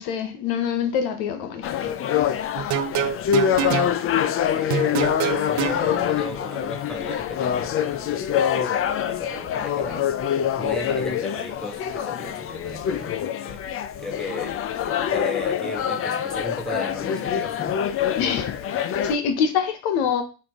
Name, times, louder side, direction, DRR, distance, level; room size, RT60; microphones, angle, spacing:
voice 1, 0.0-1.7 18.2-20.2, left 7 dB, 80° left, 0.8 m, -25 dB
sound 1, 1.6-19.2, left 9 dB, 35° left, 0.4 m, -25 dB
sound 2, 2.6-3.9 4.7-5.8, right 9 dB, 50° right, 0.5 m, -25 dB
voice 2, 4.5-10.1 10.6-14.6 14.8-17.8, left 1 dB, ahead, 1.2 m, -36 dB
5.2 x 2.5 x 3.5 m
supercardioid pair, 95°, 38 cm